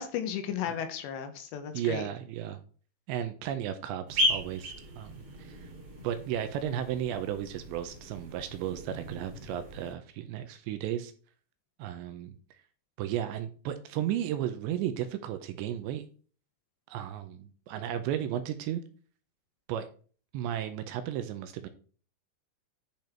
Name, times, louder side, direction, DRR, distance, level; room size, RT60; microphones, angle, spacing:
voice 1, 0.0-2.0, left 9 dB, 75° left, 8 dB, 2.9 m, -34 dB
voice 2, 1.7-2.6 3.1-5.7 6.0-11.1 11.8-12.4 13.0-16.0 16.9-18.8 19.7-19.9 20.3-21.7, right 10 dB, 80° right, 9 dB, 2.8 m, -34 dB
sound 1, 4.1-9.9, equal, 35° right, 3.4 m, -35 dB
10.5 x 5.3 x 4.5 m, 0.40 s
omnidirectional pair, 5.6 m